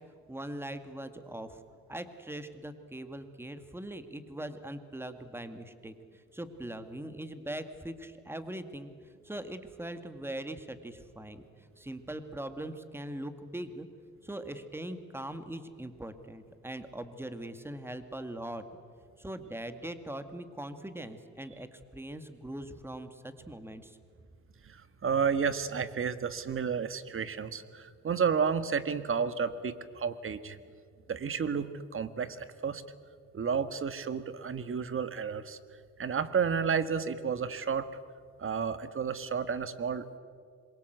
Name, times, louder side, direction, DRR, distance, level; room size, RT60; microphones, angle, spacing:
voice 1, 0.3-1.6 1.9-5.9 6.3-8.9 9.2-11.4 11.8-13.9 14.2-18.6 19.2-24.0, right 1 dB, 10° right, 9 dB, 2.1 m, -41 dB
voice 2, 24.6-30.6 31.1-32.8 33.3-35.6 36.0-37.9 38.4-40.2, right 6 dB, 45° right, 12 dB, 1.7 m, -31 dB
26.5 x 23.0 x 8.1 m, 2.1 s
cardioid pair, 90°, 30 cm